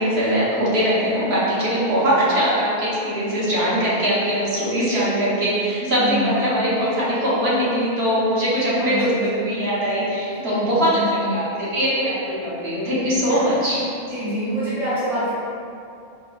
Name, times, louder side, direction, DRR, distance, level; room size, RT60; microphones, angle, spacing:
voice 1, 0.0-13.8, equal, 60° right, -9 dB, 1.1 m, -21 dB
voice 2, 5.8-6.4 8.6-9.4 10.4-11.3 14.1-15.3, right 1 dB, ahead, -9 dB, 0.6 m, -27 dB
4.7 x 2.1 x 2.4 m, 2.6 s
omnidirectional pair, 1.2 m